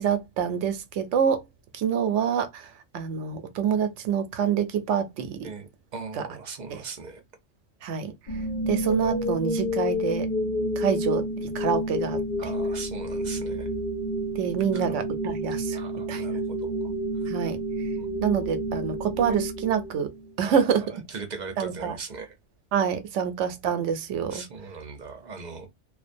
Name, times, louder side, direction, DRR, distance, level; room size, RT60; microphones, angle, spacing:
voice 1, 0.0-1.4 1.7-5.5 6.7-6.8 7.8-8.1 8.7-10.3 10.8-12.2 14.4-15.8 16.1-16.2 17.2-17.6 18.2-20.8 21.6-22.0 22.7-24.5, right 7 dB, 80° right, 0.9 m, -26 dB
voice 2, 5.4-7.2 12.4-13.7 14.7-15.0 15.7-16.9 18.0-18.1 20.4-22.3 24.3-25.7, right 4 dB, 45° right, 0.7 m, -39 dB
sound 1, 8.3-20.3, equal, 50° left, 0.5 m, -29 dB
2.4 x 2.2 x 2.5 m
omnidirectional pair, 1.2 m